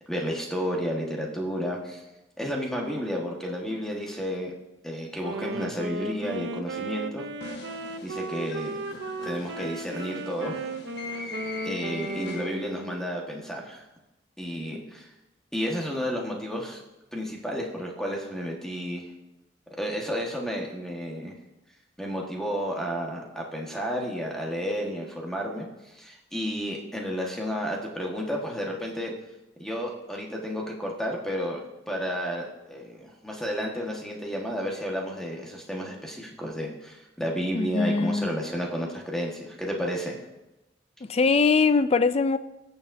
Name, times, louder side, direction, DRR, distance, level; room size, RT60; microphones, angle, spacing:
voice 1, 0.1-2.0 2.4-4.5 4.8-7.2 8.0-8.8 9.2-10.5 11.6-13.8 14.4-15.1 15.5-16.8 17.1-19.1 19.8-21.3 22.0-29.1 29.6-31.6 31.9-40.2, equal, 5° left, 1.4 m, -32 dB
Wind instrument woodwind instrument, 5.2-13.2, right 2 dB, 65° right, 0.6 m, -35 dB
sound 1, 7.4-12.8, left 3 dB, 60° left, 1.3 m, -41 dB
voice 2, 37.5-38.3 41.0-42.4, left 4 dB, 35° left, 0.4 m, -22 dB
21.0 x 7.1 x 2.6 m
head